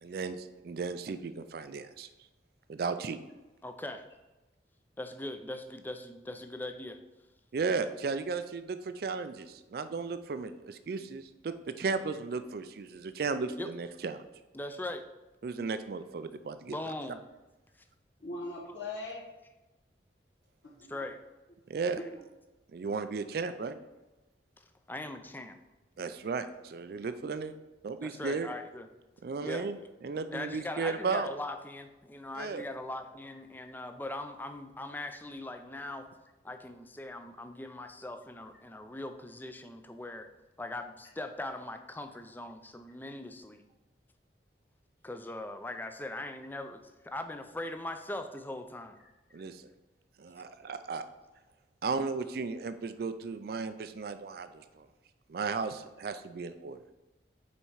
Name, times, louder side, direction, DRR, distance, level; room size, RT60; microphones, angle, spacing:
voice 1, 0.0-2.1 2.7-3.2 7.5-14.2 15.4-16.8 21.7-22.0 22.7-23.8 26.0-27.5 27.8-28.5 29.2-29.8 30.0-31.3 32.4-32.7 49.3-49.6 50.2-51.0 51.8-54.9 55.3-56.8, right 4 dB, 55° right, 10 dB, 0.4 m, -35 dB
voice 2, 3.6-4.1 5.0-7.0 13.6-13.7 14.5-15.1 16.7-17.2 20.9-21.2 24.6-25.6 28.0-28.9 29.4-29.7 30.3-36.1 36.4-40.3 40.6-43.6 45.0-49.0, left 1 dB, 10° left, 8 dB, 0.4 m, -40 dB
voice 3, 18.2-19.3 20.6-20.9 22.0-22.1 49.0-49.1, left 2 dB, 80° left, -4 dB, 1.4 m, -40 dB
5.6 x 4.2 x 4.7 m, 1.1 s
head